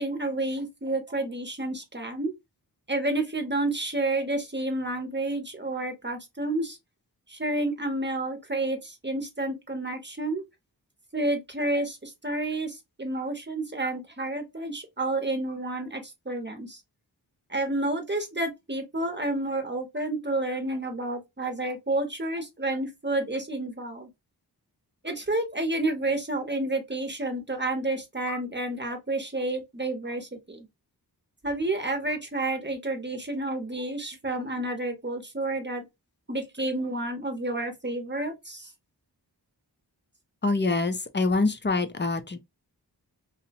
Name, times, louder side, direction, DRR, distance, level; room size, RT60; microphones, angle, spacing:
voice 1, 0.0-2.3 2.9-6.8 7.3-10.4 11.1-16.8 17.5-24.1 25.0-30.7 31.4-35.8 36.3-38.7, right 2 dB, 25° right, 0.8 m, -30 dB
voice 2, 40.4-42.4, left 3 dB, 30° left, 0.4 m, -25 dB
2.7 x 2.0 x 2.7 m
wide cardioid pair, 45°, 41 cm